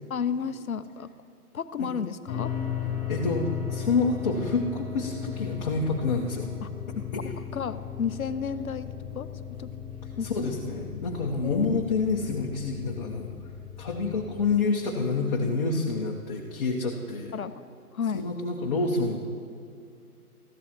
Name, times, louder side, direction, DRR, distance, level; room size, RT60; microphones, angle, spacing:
voice 1, 0.1-1.1 1.5-2.5 6.6-6.7 6.9-9.7 10.2-10.6 11.4-11.8 17.3-17.5 17.9-18.3, left 6 dB, 65° left, 13 dB, 0.8 m, -32 dB
sound 1, 2.3-14.6, left 8 dB, 10° left, 3.0 m, -36 dB
voice 2, 3.1-6.5 10.2-13.3 13.8-17.3 18.1-19.2, left 3 dB, 30° left, -3 dB, 1.0 m, -28 dB
20.5 x 14.5 x 3.0 m, 2.4 s
figure-of-eight pair, 140°, 46 cm